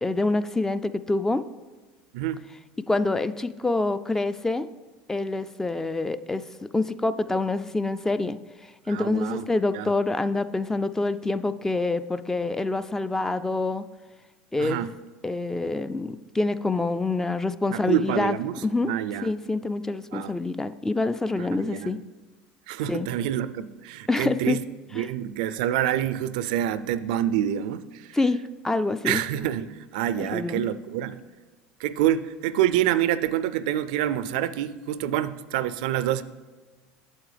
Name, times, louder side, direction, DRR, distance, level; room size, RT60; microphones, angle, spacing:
voice 1, 0.0-1.4 2.9-4.7 5.1-6.4 6.7-8.4 8.9-13.8 14.5-14.9 15.2-18.4 18.6-18.9 19.2-22.0 22.9-23.1 24.1-24.6 25.0-25.1 28.1-29.2 30.2-30.6, left 2 dB, 10° left, 13 dB, 0.3 m, -26 dB
voice 2, 8.9-9.5 9.7-9.9 14.6-14.9 17.7-19.3 20.1-20.4 21.4-21.9 22.7-24.6 24.9-28.2 29.0-31.2 31.8-36.2, right 11 dB, 75° right, 14 dB, 0.3 m, -27 dB
8.5 x 7.3 x 3.3 m, 1.3 s
hypercardioid pair, 95°, 4 cm